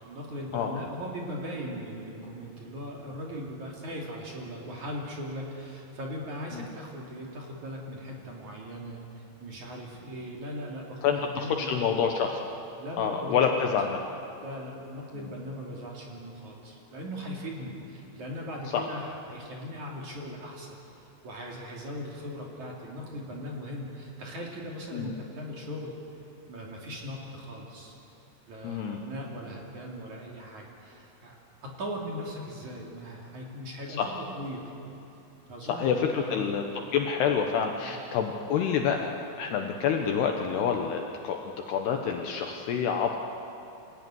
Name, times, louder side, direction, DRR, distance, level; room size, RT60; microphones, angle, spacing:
voice 1, 0.1-12.0 12.8-13.7 14.4-20.8 21.2-26.0 26.5-28.0 28.5-31.4 31.6-34.7 35.5-36.5 37.8-37.9, equal, 45° right, -2 dB, 3.6 m, -39 dB
voice 2, 11.0-12.4 13.0-14.0 18.7-18.9 24.9-25.1 28.6-29.0 34.0-34.1 35.7-36.6 36.9-41.4 41.7-43.2, left 7 dB, 70° left, 3 dB, 2.7 m, -27 dB
27.0 x 16.5 x 9.6 m, 2.7 s
omnidirectional pair, 5.7 m